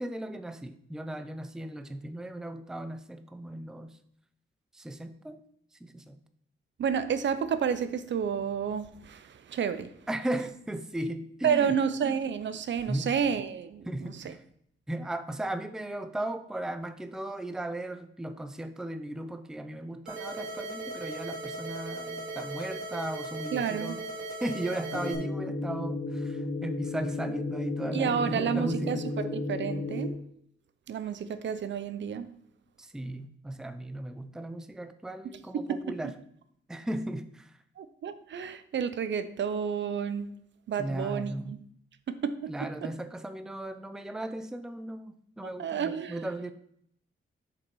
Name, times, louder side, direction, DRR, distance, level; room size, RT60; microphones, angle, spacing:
voice 1, 0.0-3.9 4.7-5.4 5.8-6.2 10.1-11.7 12.9-13.1 13.9-14.4 14.9-24.0 24.4-29.0 32.8-36.1 36.7-37.5 40.8-41.5 42.5-46.5, right 1 dB, 5° right, 0.5 m, -36 dB
voice 2, 6.8-9.9 11.4-14.3 23.5-23.9 27.9-30.2 30.9-32.3 35.5-35.8 37.8-40.3 40.7-41.6 42.1-42.9 45.6-46.2, right 7 dB, 60° right, 0.6 m, -30 dB
sound 1, 20.1-25.1, right 2 dB, 85° right, 2.7 m, -38 dB
sound 2, 24.9-30.1, left 2 dB, 45° left, 1.6 m, -33 dB
7.1 x 5.4 x 4.6 m
wide cardioid pair, 125°, 21 cm